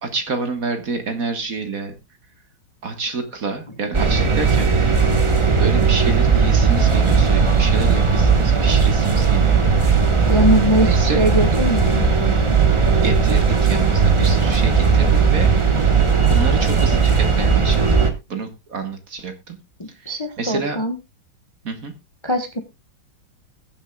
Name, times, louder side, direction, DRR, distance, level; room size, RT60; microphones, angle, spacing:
voice 1, 0.0-1.9 2.8-4.7 5.6-9.6 10.8-11.3 13.0-15.5 16.3-18.0 18.3-19.6 19.9-20.8 21.6-21.9, right 4 dB, 45° right, 7 dB, 1.7 m, -28 dB
sound 1, 3.9-18.1, right 5 dB, 20° right, 0.8 m, -17 dB
voice 2, 10.3-12.6 19.8-21.0 22.2-22.6, equal, 20° left, 7 dB, 1.0 m, -21 dB
21.0 x 7.4 x 2.3 m, 0.23 s
omnidirectional pair, 2.2 m